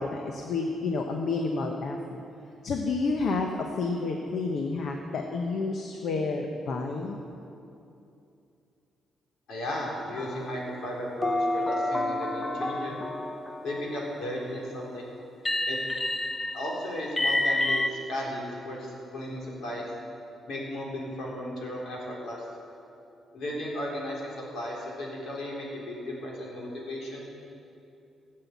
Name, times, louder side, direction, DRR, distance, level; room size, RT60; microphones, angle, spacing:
voice 1, 0.0-2.2 2.6-3.5 3.8-7.2, left 3 dB, 50° left, 2 dB, 0.9 m, -30 dB
voice 2, 9.5-13.0 13.6-15.1 15.7-15.8 16.5-19.8 20.5-22.4 23.3-27.3, left 1 dB, 65° left, -3 dB, 3.8 m, -35 dB
sound 1, 10.2-10.7 11.2-14.3 15.4-17.9, left 1 dB, 15° left, 0.5 m, -29 dB
16.0 x 7.7 x 8.2 m, 2.7 s
cardioid pair, 175°, 0 cm